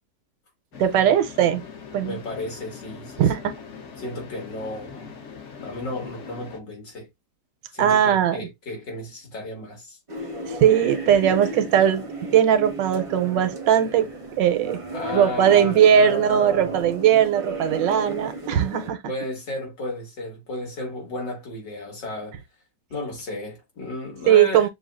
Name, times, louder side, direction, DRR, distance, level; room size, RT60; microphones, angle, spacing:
sound 1, 0.7-6.6, left 6 dB, 55° left, 0.9 m, -41 dB
voice 1, 0.8-1.6 1.9-2.2 3.2-3.4 7.8-8.5 10.5-14.1 14.4-14.8 15.1-19.0 24.3-24.7, right 9 dB, 80° right, 1.3 m, -19 dB
voice 2, 2.0-3.2 4.0-5.1 5.6-7.1 7.7-10.0 14.9-16.9 19.1-22.4 22.9-24.7, left 2 dB, 70° left, 2.6 m, -33 dB
sound 2, 10.1-18.9, right 2 dB, 35° right, 0.5 m, -34 dB
6.6 x 2.3 x 2.4 m
omnidirectional pair, 1.9 m